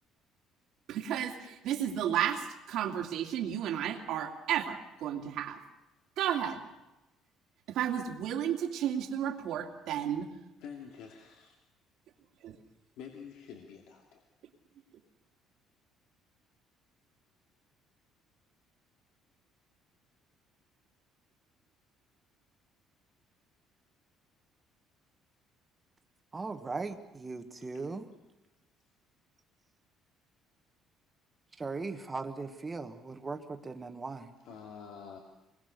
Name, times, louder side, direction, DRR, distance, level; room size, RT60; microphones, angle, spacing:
voice 1, 0.9-5.6 6.2-6.6 7.7-10.3 12.4-12.6, right 10 dB, 65° right, 3 dB, 2.5 m, -32 dB
voice 2, 10.6-11.6 13.0-14.2 27.7-27.8 34.4-35.2, left 7 dB, 75° left, 1 dB, 2.7 m, -47 dB
voice 3, 26.3-28.0 31.6-34.3, right 3 dB, 15° right, 7 dB, 1.5 m, -38 dB
26.0 x 21.5 x 6.7 m, 0.99 s
cardioid pair, 160°, 0 cm